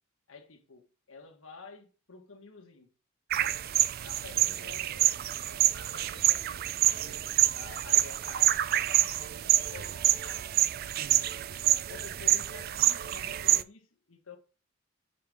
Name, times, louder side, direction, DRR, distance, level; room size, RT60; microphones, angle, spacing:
voice 1, 0.3-2.9 3.3-3.6 4.0-7.3 7.5-10.5 11.1-11.3 11.7-14.4, left 4 dB, 85° left, 1.4 m, -50 dB
sound 1, 3.3-13.6, right 13 dB, 50° right, 0.3 m, -27 dB
6.7 x 5.2 x 3.5 m
head